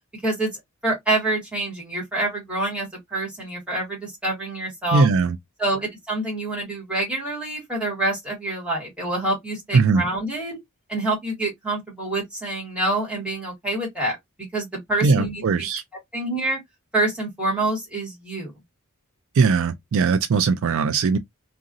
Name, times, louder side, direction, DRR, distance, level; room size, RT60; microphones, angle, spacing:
voice 1, 0.1-0.5 0.8-5.1 5.6-10.6 10.9-14.2 14.5-15.4 16.1-16.6 16.9-18.5, right 2 dB, 5° right, 1.7 m, -26 dB
voice 2, 4.9-5.4 9.7-10.0 15.0-15.8 19.4-21.2, right 4 dB, 60° right, 0.4 m, -19 dB
2.8 x 2.6 x 2.7 m
head